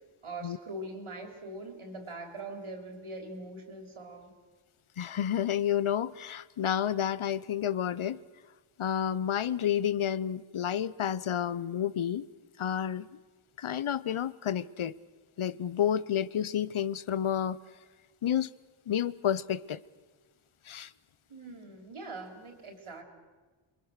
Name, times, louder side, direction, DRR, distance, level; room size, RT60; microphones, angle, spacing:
voice 1, 0.2-4.3 21.3-23.0, right 2 dB, 75° right, 3.5 m, -42 dB
voice 2, 5.0-8.2 8.8-12.3 12.6-13.1 13.6-14.9 15.4-17.6 18.2-18.5 18.9-19.8 20.7-20.9, left 9 dB, 75° left, 0.8 m, -30 dB
27.5 x 22.0 x 6.5 m
wide cardioid pair, 90°, 50 cm